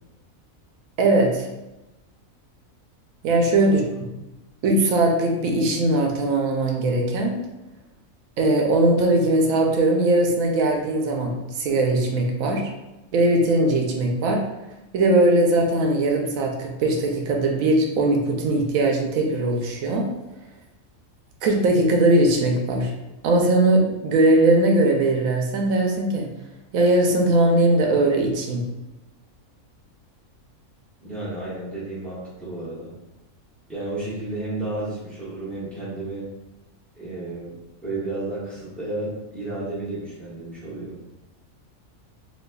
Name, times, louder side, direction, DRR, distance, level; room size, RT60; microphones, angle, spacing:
voice 1, 1.0-1.5 3.2-3.8 4.6-7.4 8.4-12.7 13.1-14.5 14.9-20.1 21.4-22.9 23.2-26.3 26.7-28.6, right 2 dB, 80° right, 1 dB, 1.0 m, -20 dB
voice 2, 31.0-32.9 33.7-36.3 36.9-37.5 37.8-41.0, right 2 dB, ahead, -10 dB, 1.1 m, -32 dB
4.1 x 2.6 x 2.3 m, 0.99 s
omnidirectional pair, 1.4 m